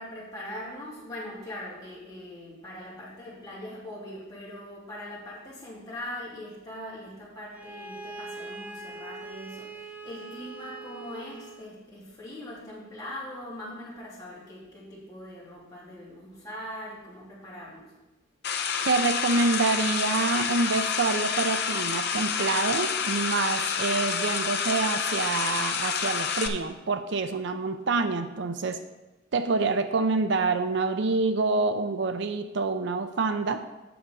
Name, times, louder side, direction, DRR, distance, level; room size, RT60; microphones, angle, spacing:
voice 1, 0.0-17.9, left 1 dB, 20° left, -8 dB, 3.2 m, -41 dB
Bowed string instrument, 7.5-11.7, right 3 dB, 10° right, 0.6 m, -42 dB
sound 1, 18.4-26.5, left 6 dB, 55° left, 0.8 m, -28 dB
voice 2, 18.8-28.8 29.3-33.6, right 3 dB, 60° right, 9 dB, 0.5 m, -27 dB
8.6 x 6.5 x 5.5 m, 1.1 s
head